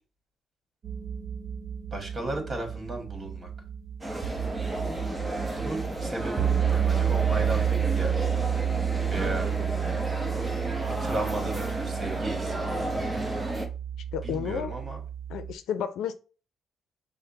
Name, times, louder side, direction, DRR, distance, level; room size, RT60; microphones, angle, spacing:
sound 1, 0.8-15.5, right 8 dB, 55° right, 0.6 m, -30 dB
voice 1, 1.9-3.5 5.5-8.4 9.1-9.5 10.3-12.9 14.2-15.0, right 2 dB, 35° right, 1.5 m, -35 dB
sound 2, 4.0-13.7, right 1 dB, 15° right, 0.9 m, -33 dB
voice 2, 14.1-14.8 15.3-16.1, left 8 dB, 85° left, 0.5 m, -31 dB
5.7 x 2.1 x 3.9 m
cardioid pair, 90°, 0 cm